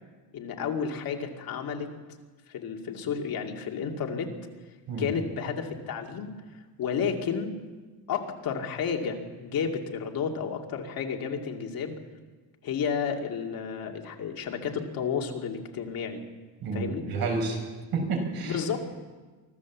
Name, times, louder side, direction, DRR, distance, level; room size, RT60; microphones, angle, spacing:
voice 1, 0.3-1.9 2.5-4.3 5.0-6.3 6.8-7.5 8.1-12.0 12.6-16.2 16.7-17.1 18.4-18.8, left 6 dB, 60° left, 2 dB, 2.4 m, -31 dB
voice 2, 16.6-17.6 17.9-18.6, right 3 dB, 65° right, 2 dB, 5.7 m, -29 dB
24.0 x 15.5 x 7.3 m, 1.3 s
cardioid pair, 170°, 40 cm